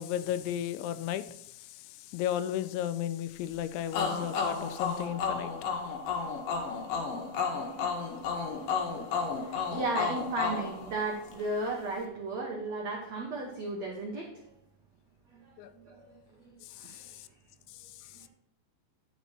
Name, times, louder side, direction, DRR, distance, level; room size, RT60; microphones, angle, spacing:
voice 1, 0.0-5.5 15.6-15.7 16.6-17.3 17.7-18.2, left 11 dB, 85° left, 13 dB, 2.9 m, -35 dB
sound 1, 3.9-11.5, left 5 dB, 60° left, 2.7 m, -33 dB
voice 2, 8.5-14.5 15.3-15.5 15.8-17.2 18.2-18.3, right 2 dB, 90° right, -1 dB, 1.5 m, -36 dB
10.0 x 7.0 x 4.4 m, 0.76 s
omnidirectional pair, 5.3 m